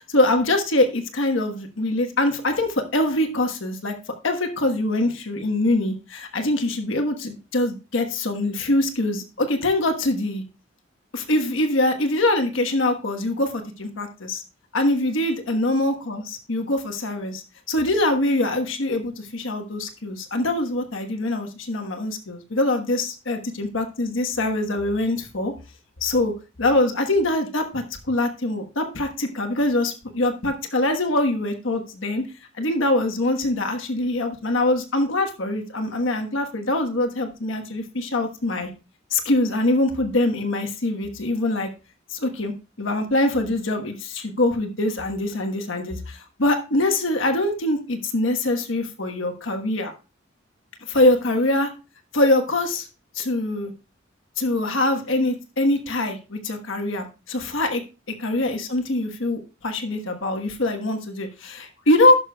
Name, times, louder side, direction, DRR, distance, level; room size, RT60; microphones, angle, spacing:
voice 1, 0.0-3.9 4.2-10.4 11.1-14.4 14.7-25.5 26.0-26.3 26.6-32.2 32.6-38.7 39.1-41.7 42.1-42.5 42.8-49.9 50.9-51.7 52.1-52.9 53.1-53.7 54.4-57.8 58.2-62.2, left 1 dB, 75° left, 5 dB, 1.3 m, -23 dB
16.5 x 6.4 x 2.3 m, 0.32 s
head